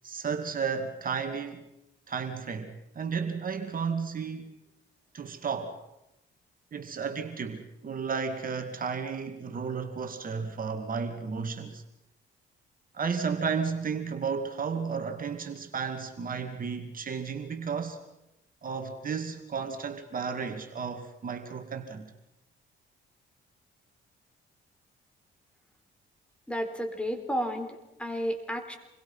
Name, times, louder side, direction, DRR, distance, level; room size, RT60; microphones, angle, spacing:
voice 1, 0.0-1.6 2.1-4.5 5.1-5.8 6.7-11.8 12.9-18.0 18.6-22.1, right 5 dB, 45° right, 2.4 m, -33 dB
voice 2, 26.5-28.8, equal, 5° left, 4.1 m, -32 dB
28.0 x 22.0 x 5.7 m
cardioid pair, 90°, 20 cm